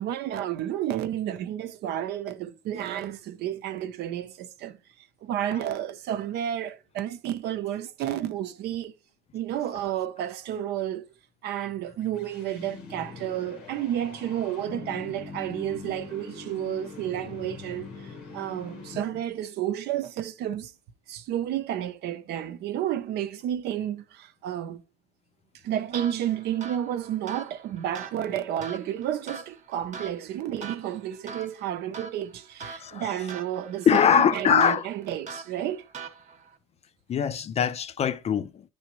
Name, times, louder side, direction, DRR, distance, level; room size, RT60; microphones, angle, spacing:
voice 1, 0.0-4.8 5.2-8.9 9.3-11.1 11.4-20.7 21.1-24.8 25.6-35.8, right 11 dB, 75° right, 0.6 m, -31 dB
sound 1, 11.6-19.4, left 4 dB, 85° left, 1.3 m, -43 dB
sound 2, 25.9-36.6, right 4 dB, 45° right, 0.8 m, -43 dB
voice 2, 32.8-33.3 33.9-34.9 37.1-38.6, left 8 dB, 40° left, 0.4 m, -22 dB
10.0 x 3.4 x 2.9 m
cardioid pair, 110°, 17 cm